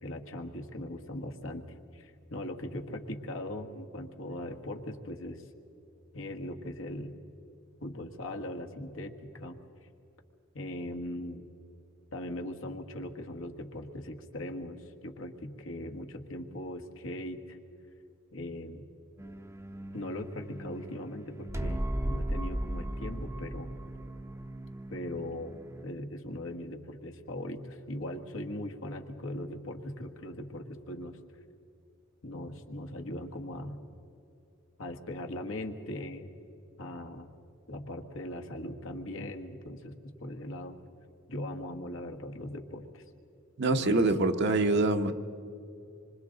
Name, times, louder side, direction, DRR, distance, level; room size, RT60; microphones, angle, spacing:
voice 1, 0.0-5.5 6.1-7.1 7.8-9.6 10.5-11.5 12.1-17.6 18.3-18.9 19.9-23.7 24.9-31.2 32.2-33.8 34.8-36.3 36.8-37.3 37.7-40.8 41.3-43.0 43.7-44.1, left 1 dB, 75° left, 3 dB, 1.6 m, -40 dB
sound 1, 19.2-25.8, right 1 dB, 15° right, 0.7 m, -37 dB
voice 2, 43.6-45.1, right 2 dB, 55° right, 6 dB, 0.9 m, -25 dB
26.5 x 24.5 x 4.0 m, 2.7 s
head